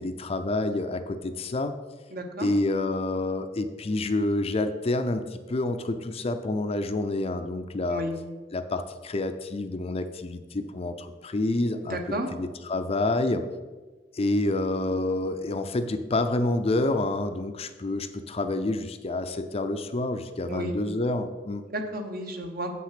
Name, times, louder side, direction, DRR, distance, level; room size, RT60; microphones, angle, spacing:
voice 1, 0.0-1.7 2.4-8.0 8.5-12.0 12.3-13.4 14.1-21.6, left 2 dB, 35° left, 9 dB, 0.5 m, -28 dB
voice 2, 2.1-2.5 7.9-8.1 11.8-12.3 20.5-20.7 21.7-22.7, right 1 dB, 55° right, 5 dB, 1.0 m, -32 dB
7.3 x 6.0 x 5.8 m, 1.3 s
head